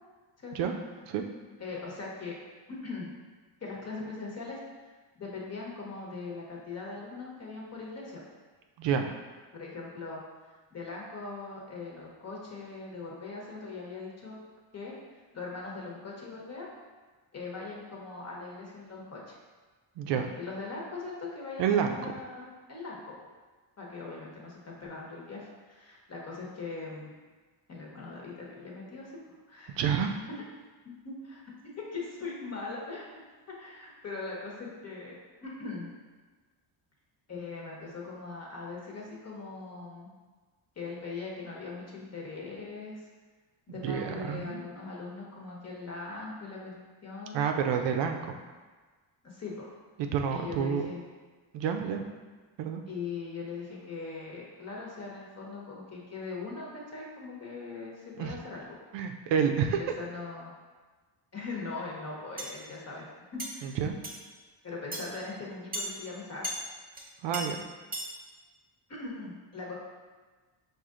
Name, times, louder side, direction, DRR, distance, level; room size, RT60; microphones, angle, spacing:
voice 1, 0.4-0.7 1.6-2.4 2.7-3.1 3.6-8.2 9.5-10.2 10.7-14.4 14.7-14.9 15.3-16.7 17.3-19.4 20.4-23.3 23.8-27.1 27.7-29.2 29.5-29.9 30.4-30.5 30.8-31.4 31.8-33.1 33.6-35.1 35.4-35.9 37.3-40.1 40.7-43.1 43.7-46.7 47.0-47.4 49.2-49.7 50.3-51.0 52.9-58.8 59.8-60.5 61.3-63.0 63.3-63.7 64.6-66.6 68.9-69.8, left 3 dB, 35° left, -3 dB, 1.2 m, -40 dB
voice 2, 20.0-20.3 21.6-22.0 29.8-30.2 43.8-44.6 47.3-48.4 50.1-50.9 51.5-52.0 52.6-52.8 58.2-58.3 58.9-59.8 63.6-64.0 67.2-67.6, right 7 dB, 65° right, 5 dB, 0.5 m, -28 dB
sound 1, 62.4-62.5 63.4-63.5 64.0-64.2 64.9-65.0 65.7-65.9 66.4-66.6 66.9-67.0 67.3-67.4 67.9-68.1, right 1 dB, 20° right, 1.0 m, -35 dB
4.8 x 2.6 x 3.7 m, 1.4 s
cardioid pair, 95°, 47 cm